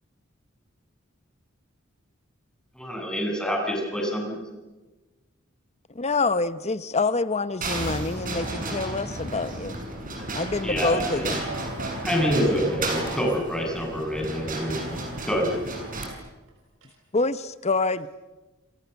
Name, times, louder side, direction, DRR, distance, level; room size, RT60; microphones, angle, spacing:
voice 1, 2.7-4.4 10.6-11.3 12.0-15.7, equal, 5° left, 0 dB, 7.8 m, -27 dB
voice 2, 5.9-9.8 10.3-11.4 17.1-18.1, left 3 dB, 35° left, 14 dB, 0.9 m, -26 dB
sound 1, 7.6-16.1, right 2 dB, 45° right, 6.8 m, -32 dB
voice 3, 11.4-12.0 12.2-12.7 16.5-17.0, right 3 dB, 85° right, 1 dB, 5.6 m, -40 dB
28.5 x 28.0 x 7.1 m, 1.1 s
head